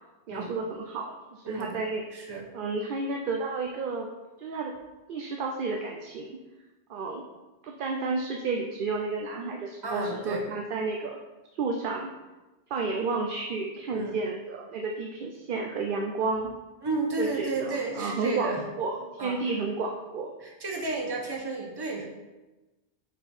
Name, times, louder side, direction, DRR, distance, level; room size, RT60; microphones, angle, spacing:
voice 1, 0.3-2.0 2.5-4.1 4.4-4.7 5.1-6.4 6.9-7.2 7.6-11.2 11.5-12.1 12.7-16.5 17.2-18.5 18.8-20.3, right 3 dB, 60° right, 2 dB, 0.7 m, -31 dB
voice 2, 1.4-1.8 2.1-2.5 9.8-10.4 13.9-14.2 16.8-18.6 19.2-19.4 20.4-22.1, right 3 dB, 25° right, 0 dB, 0.9 m, -32 dB
5.7 x 4.4 x 4.2 m, 1.1 s
omnidirectional pair, 1.1 m